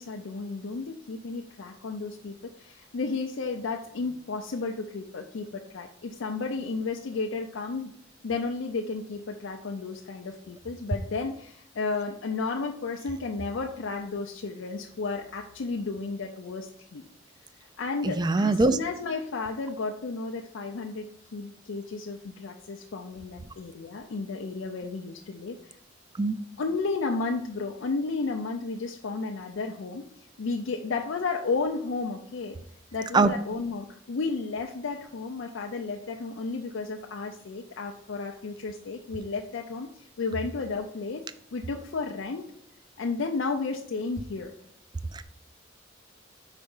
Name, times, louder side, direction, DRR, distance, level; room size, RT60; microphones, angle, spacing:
voice 1, 0.0-7.9 8.2-17.0 17.6-25.7 26.6-30.1 30.4-32.6 32.9-41.2 41.5-42.5 43.0-44.5, left 4 dB, 70° left, 2 dB, 0.5 m, -33 dB
voice 2, 18.0-18.8 26.2-26.4 33.1-33.3 45.1-45.2, right 3 dB, 20° right, 12 dB, 0.3 m, -22 dB
4.9 x 4.4 x 5.4 m, 0.66 s
head